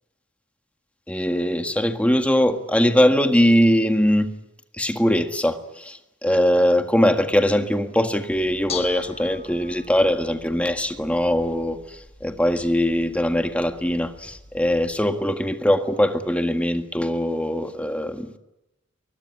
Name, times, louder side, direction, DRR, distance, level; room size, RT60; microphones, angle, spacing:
voice 1, 1.1-4.3 4.8-18.3, equal, 5° left, 1.8 m, -21 dB
Bell / Dishes pots and pans, 8.3-14.9, left 6 dB, 30° left, 1.7 m, -42 dB
23.5 x 21.0 x 9.7 m
head